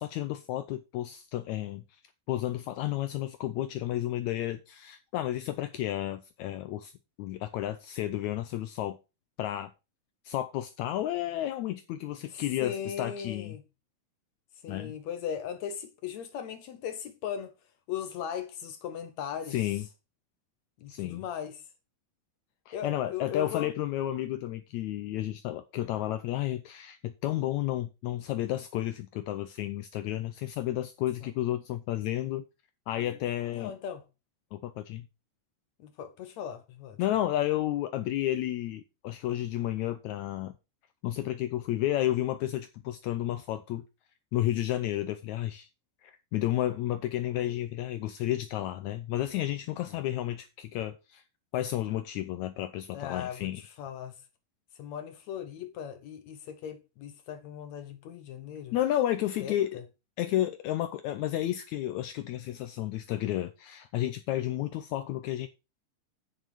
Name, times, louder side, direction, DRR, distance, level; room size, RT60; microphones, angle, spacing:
voice 1, 0.0-1.8 2.3-6.9 7.2-9.0 9.4-9.7 10.2-13.5 14.7-14.9 19.5-19.8 20.9-21.2 22.7-32.4 32.9-33.7 34.5-35.1 37.0-40.5 41.0-43.8 44.3-45.7 46.0-51.2 51.5-53.6 58.7-59.8 60.2-65.5, left 13 dB, 85° left, 1.6 m, -32 dB
voice 2, 12.3-13.6 14.6-17.5 17.9-19.6 20.8-21.7 22.7-23.7 31.2-31.3 33.5-34.0 35.8-37.0 52.9-54.2 54.8-58.8 59.4-59.8, left 8 dB, 70° left, 1.8 m, -38 dB
9.1 x 6.5 x 4.7 m
omnidirectional pair, 4.0 m